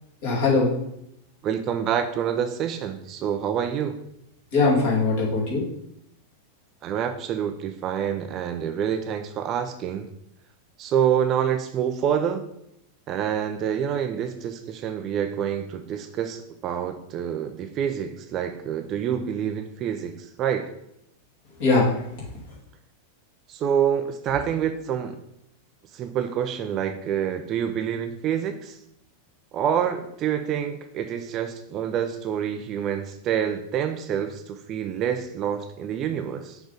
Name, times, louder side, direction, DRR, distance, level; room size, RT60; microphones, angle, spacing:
voice 1, 0.2-0.7 4.5-5.6 21.6-22.0, left 3 dB, 50° left, -4 dB, 2.6 m, -21 dB
voice 2, 1.4-4.0 6.8-10.1 10.8-12.4 13.1-20.7 23.5-25.2 25.9-28.8 29.5-36.6, right 8 dB, 35° right, 7 dB, 0.6 m, -27 dB
6.3 x 3.5 x 5.2 m, 0.77 s
figure-of-eight pair, 90°, 0 cm